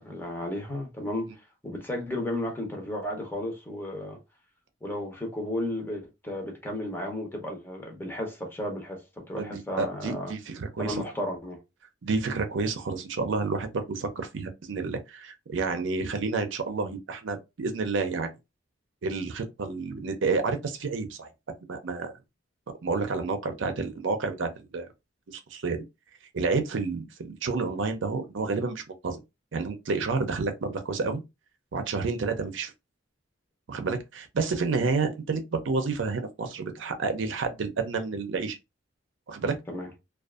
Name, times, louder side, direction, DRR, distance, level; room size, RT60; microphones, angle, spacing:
voice 1, 0.0-1.4 1.6-4.2 4.8-10.3 10.8-11.6 34.8-34.9 39.7-39.9, left 1 dB, 10° left, 0.7 m, -33 dB
voice 2, 9.4-11.0 12.0-18.3 19.0-21.3 21.7-22.1 22.8-24.9 25.3-25.8 26.3-29.2 29.5-31.2 31.7-32.7 33.7-38.6 39.3-39.6, right 4 dB, 70° right, 0.5 m, -30 dB
2.5 x 2.3 x 2.3 m
head